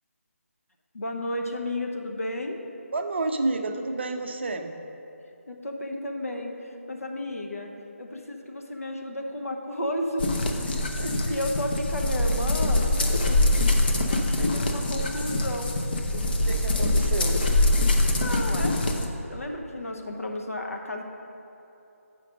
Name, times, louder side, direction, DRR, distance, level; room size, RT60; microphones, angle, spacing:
voice 1, 0.9-2.6 5.5-7.7 8.0-10.3 11.3-13.7 14.0-15.7 18.2-21.0, left 1 dB, 70° left, 2 dB, 0.9 m, -33 dB
voice 2, 2.9-4.7 10.7-11.5 16.1-17.4, right 2 dB, 45° right, 6 dB, 0.5 m, -31 dB
sound 1, 10.2-19.1, left 1 dB, 40° left, 0.6 m, -24 dB
7.4 x 5.1 x 5.1 m, 3.0 s
figure-of-eight pair, 155°, 8 cm